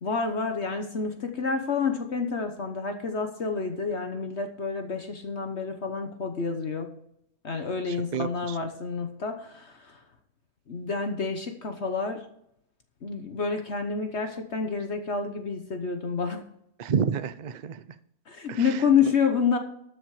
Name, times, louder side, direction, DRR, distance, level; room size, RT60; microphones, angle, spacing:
voice 1, 0.0-6.9 7.4-10.0 10.7-12.2 13.0-16.4 18.3-19.6, left 5 dB, 50° left, 6 dB, 1.3 m, -28 dB
voice 2, 7.9-8.6 16.8-17.8 18.5-18.8, right 7 dB, 60° right, 13 dB, 0.4 m, -30 dB
13.0 x 7.0 x 4.9 m, 0.76 s
omnidirectional pair, 1.6 m